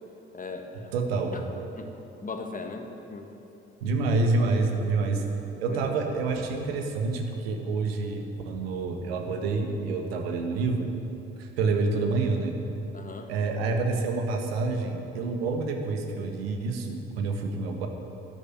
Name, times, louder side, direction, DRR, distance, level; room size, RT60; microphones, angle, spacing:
voice 1, 0.3-0.9 1.3-1.4 1.8-1.9 2.2-3.3 5.1-5.3 5.7-5.9 12.9-13.3, left 4 dB, 25° left, 4 dB, 1.7 m, -38 dB
voice 2, 0.9-1.3 3.8-5.2 5.6-10.9 11.4-12.6 13.3-17.9, right 3 dB, 75° right, 4 dB, 1.6 m, -28 dB
12.5 x 11.0 x 9.7 m, 2.9 s
figure-of-eight pair, 50°, 30 cm